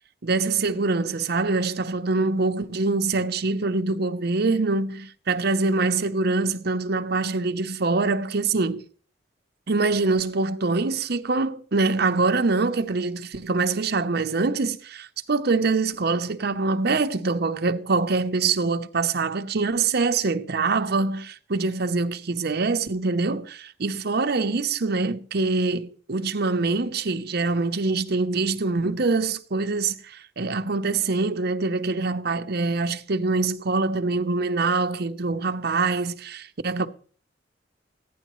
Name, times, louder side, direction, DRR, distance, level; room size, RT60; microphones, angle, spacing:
voice 1, 0.2-8.8 9.7-36.9, right 3 dB, 60° right, 0.8 m, -24 dB
15.5 x 10.5 x 3.1 m
head